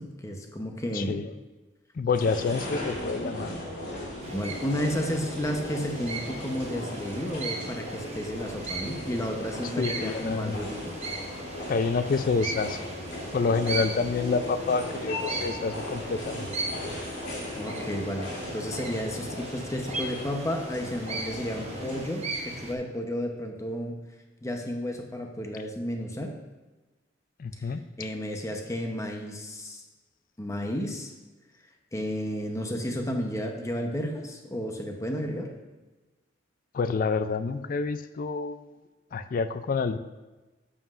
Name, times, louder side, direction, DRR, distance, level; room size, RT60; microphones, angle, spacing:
voice 1, 0.0-1.2 4.3-10.9 17.5-24.0 24.4-26.3 27.6-29.8 30.4-31.1 31.9-35.5, equal, 15° left, 3 dB, 0.8 m, -32 dB
voice 2, 0.9-1.4 2.0-3.5 9.6-10.6 11.7-12.8 13.3-16.5 27.4-28.1 36.7-38.7 39.1-40.0, left 4 dB, 50° left, 12 dB, 0.4 m, -28 dB
sound 1, 2.1-22.1, left 1 dB, 70° left, 2.9 m, -37 dB
sound 2, 4.2-22.7, right 3 dB, 35° right, 0.9 m, -38 dB
11.0 x 7.5 x 2.5 m, 1.2 s
head